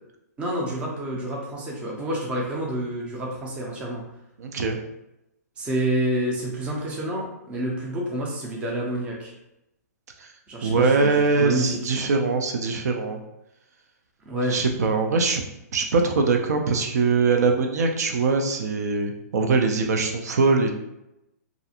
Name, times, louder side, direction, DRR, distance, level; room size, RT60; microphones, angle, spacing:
voice 1, 0.4-4.0 5.6-9.3 10.5-11.9 14.3-14.6, right 1 dB, 10° right, -2 dB, 0.4 m, -28 dB
voice 2, 4.4-4.8 10.6-13.2 14.5-15.4 15.7-20.7, right 4 dB, 70° right, 4 dB, 0.4 m, -22 dB
2.4 x 2.3 x 2.7 m, 0.88 s
hypercardioid pair, 150°, 9 cm